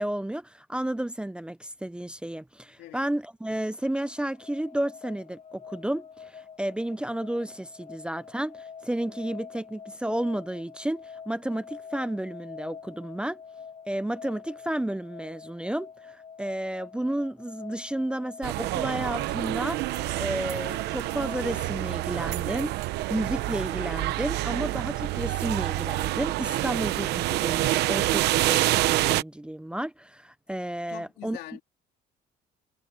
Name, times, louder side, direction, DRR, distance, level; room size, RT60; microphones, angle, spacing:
voice 1, 0.0-13.4 13.9-19.8 20.2-22.7 23.1-31.4, right 1 dB, 5° right, 0.8 m, -32 dB
sound 1, 3.4-21.6, left 6 dB, 45° left, 2.5 m, -46 dB
sound 2, 18.4-29.2, right 17 dB, 85° right, 0.9 m, -27 dB
voice 2, 30.9-31.6, left 14 dB, 75° left, 3.6 m, -43 dB
cardioid pair, 110°, 17 cm